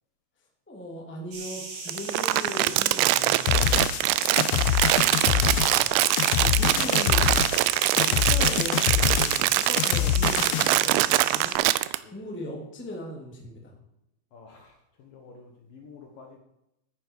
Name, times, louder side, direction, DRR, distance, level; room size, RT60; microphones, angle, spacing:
voice 1, 0.7-3.9 6.1-7.3 7.9-11.6 12.1-13.7, left 1 dB, 5° left, 0 dB, 1.5 m, -38 dB
sound 1, 1.3-11.5, right 3 dB, 50° right, 3.6 m, -38 dB
Crumpling crinkling, 1.9-12.0, right 17 dB, 85° right, 3.0 m, -23 dB
sound 2, 3.5-10.8, left 11 dB, 85° left, 2.3 m, -25 dB
voice 2, 4.5-6.1 7.9-8.1 12.0-12.3 14.3-16.4, left 4 dB, 60° left, 2 dB, 2.6 m, -50 dB
13.5 x 9.8 x 4.8 m, 0.84 s
omnidirectional pair, 5.3 m